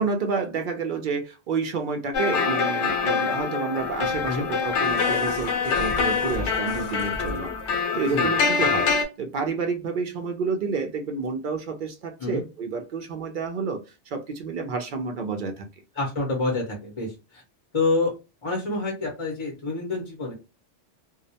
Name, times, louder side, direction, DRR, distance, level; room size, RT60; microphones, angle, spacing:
voice 1, 0.0-15.7, right 4 dB, 60° right, 5 dB, 0.6 m, -29 dB
sound 1, 2.1-9.1, left 5 dB, 75° left, 0.9 m, -25 dB
sound 2, 4.0-7.7 9.0-9.1, equal, 85° right, 0.9 m, -38 dB
voice 2, 16.0-17.1 17.7-18.1 18.4-20.3, left 3 dB, 35° left, -1 dB, 0.6 m, -27 dB
2.3 x 2.1 x 2.6 m, 0.28 s
omnidirectional pair, 1.2 m